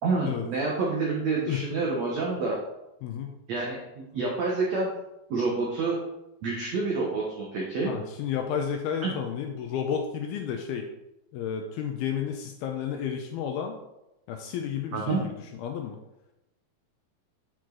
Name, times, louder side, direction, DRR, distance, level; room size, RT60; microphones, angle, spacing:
voice 1, 0.0-2.6 3.5-4.9 5.3-6.0 6.4-8.0 9.0-9.2 14.9-15.3, right 3 dB, 80° right, -3 dB, 1.5 m, -28 dB
voice 2, 3.0-3.3 7.9-10.9 11.3-13.8 14.3-15.3 15.6-16.0, left 8 dB, 80° left, 3 dB, 2.3 m, -31 dB
8.6 x 5.0 x 3.9 m, 0.90 s
omnidirectional pair, 4.9 m